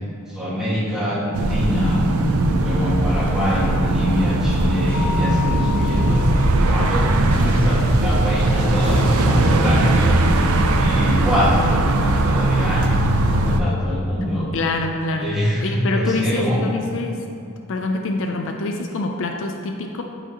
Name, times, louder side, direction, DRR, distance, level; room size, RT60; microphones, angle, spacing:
voice 1, 0.3-2.0 2.6-10.2 10.8-14.5 15.2-16.6, equal, 5° right, -9 dB, 1.7 m, -24 dB
sound 1, 1.3-13.6, right 1 dB, 75° right, 0.5 m, -19 dB
Mallet percussion, 4.9-6.7, left 5 dB, 80° left, 1.0 m, -31 dB
sound 2, 4.9-5.2 7.3-8.0 8.8-11.4, equal, 25° left, 0.8 m, -34 dB
voice 2, 14.5-15.3 15.6-17.2 17.7-20.0, left 2 dB, 60° left, 3 dB, 0.5 m, -25 dB
10.5 x 4.9 x 2.9 m, 2.5 s
head